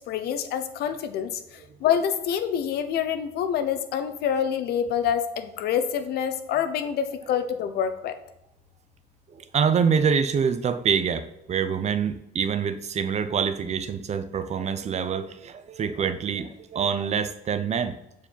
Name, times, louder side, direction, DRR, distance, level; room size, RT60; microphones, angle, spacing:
voice 1, 0.0-1.4 1.8-8.1, left 8 dB, 70° left, 9 dB, 0.9 m, -26 dB
voice 2, 9.4-17.9, right 6 dB, 40° right, 11 dB, 0.7 m, -26 dB
8.7 x 4.8 x 4.5 m, 0.84 s
cardioid pair, 110°, 17 cm